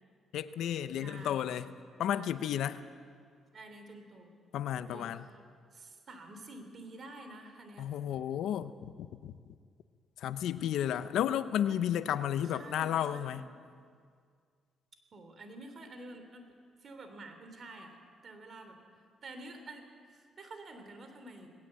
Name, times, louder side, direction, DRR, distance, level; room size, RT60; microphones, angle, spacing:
voice 1, 0.3-1.7 2.0-2.8 4.5-5.2 7.8-9.4 10.2-13.5, left 10 dB, 80° left, 12 dB, 0.7 m, -32 dB
voice 2, 1.0-1.5 2.0-2.4 3.5-4.3 4.7-5.1 5.7-7.9 12.4-13.4 15.1-16.5 16.8-18.8 19.2-21.5, right 2 dB, 50° right, 7 dB, 3.3 m, -49 dB
19.5 x 18.0 x 7.7 m, 2.1 s
cardioid pair, 90°, 0 cm